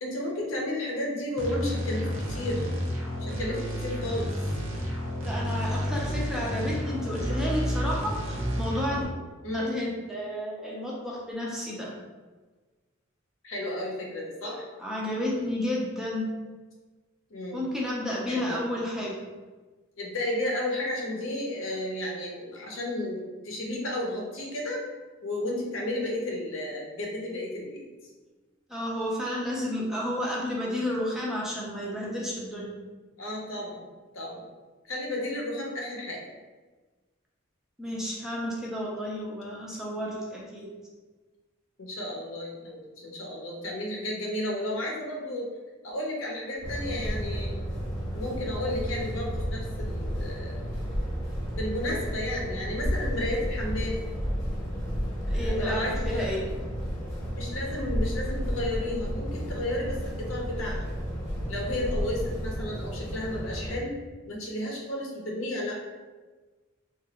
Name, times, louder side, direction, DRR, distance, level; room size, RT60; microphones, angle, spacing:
voice 1, 0.0-2.6 3.2-4.3 9.4-9.7 13.4-14.7 17.3-17.6 18.2-18.6 20.0-24.8 25.2-27.8 33.2-33.9 34.1-34.5 34.9-36.2 41.8-45.5 45.8-47.5 48.1-50.7 51.5-54.0 55.3-56.5 57.4-60.9 61.5-63.9 64.3-65.8, left 1 dB, 75° left, -1 dB, 0.7 m, -32 dB
sound 1, 1.4-9.0, equal, 85° right, 0.8 m, -30 dB
voice 2, 5.2-9.0 9.5-11.9 14.8-16.3 17.5-19.2 28.7-32.7 37.8-40.7 55.3-56.4, left 1 dB, ahead, -4 dB, 0.4 m, -31 dB
sound 2, 46.6-63.8, equal, 15° left, 0.9 m, -32 dB
2.9 x 2.4 x 2.8 m, 1.3 s
head